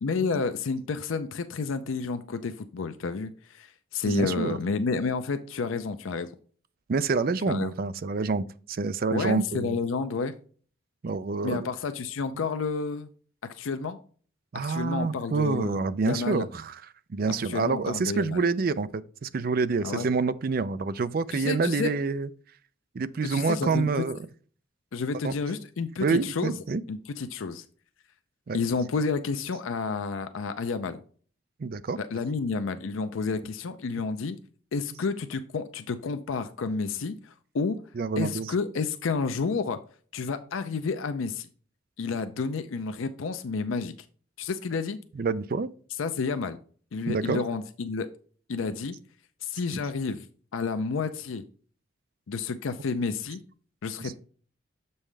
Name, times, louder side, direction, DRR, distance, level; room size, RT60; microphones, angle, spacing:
voice 1, 0.0-6.3 7.5-7.7 9.1-10.3 11.4-13.1 13.5-14.0 14.5-15.8 16.1-16.5 17.4-18.4 19.8-20.1 21.3-21.9 23.2-23.9 24.9-26.5 26.9-27.7 28.5-31.0 32.0-34.4 34.7-37.8 38.2-39.8 40.1-41.5 42.0-43.9 44.4-45.0 46.0-46.6 46.9-48.1 48.5-48.9 49.4-50.3 50.5-51.4 52.3-53.4 53.8-54.2, left 4 dB, 90° left, 0.5 m, -30 dB
voice 2, 4.1-4.6 6.9-9.8 11.0-11.7 12.3-12.4 14.5-16.8 17.1-22.3 22.9-24.2 25.2-25.3 26.0-26.8 28.5-28.6 31.6-32.0 38.0-38.5 45.2-45.7 47.1-47.4 54.0-54.1, right 4 dB, 50° right, 0.4 m, -27 dB
7.3 x 5.5 x 3.3 m
head